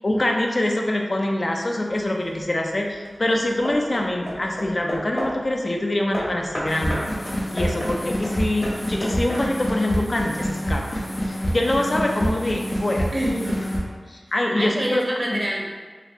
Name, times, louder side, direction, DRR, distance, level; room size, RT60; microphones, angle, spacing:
voice 1, 0.0-7.1 7.5-13.1 14.1-15.4, left 1 dB, 50° left, 1 dB, 0.4 m, -24 dB
Hammer / Wood, 1.9-2.4 3.0-5.5 6.1-9.8, equal, 35° left, 0.9 m, -33 dB
sound 1, 6.6-13.8, equal, 75° left, 0.7 m, -27 dB
voice 2, 13.1-13.7 14.5-15.6, right 1 dB, 40° right, -2 dB, 0.7 m, -27 dB
3.9 x 2.4 x 2.8 m, 1.5 s
wide cardioid pair, 50°, 0 cm